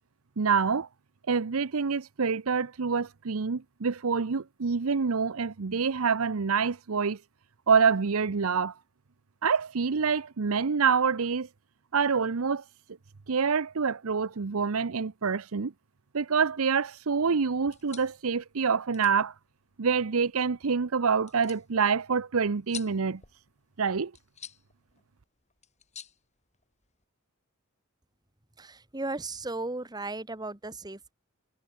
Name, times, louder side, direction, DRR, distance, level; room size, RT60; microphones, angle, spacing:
voice 1, 0.4-0.9 1.3-7.2 7.7-8.7 9.4-11.5 11.9-12.6 13.3-15.7 16.1-19.3 19.8-23.2 23.8-24.1, right 5 dB, 85° right, 0.7 m, -26 dB
sound 1, 17.6-27.0, left 8 dB, 35° left, 6.9 m, -50 dB
voice 2, 28.6-31.1, right 2 dB, 20° right, 1.6 m, -36 dB
head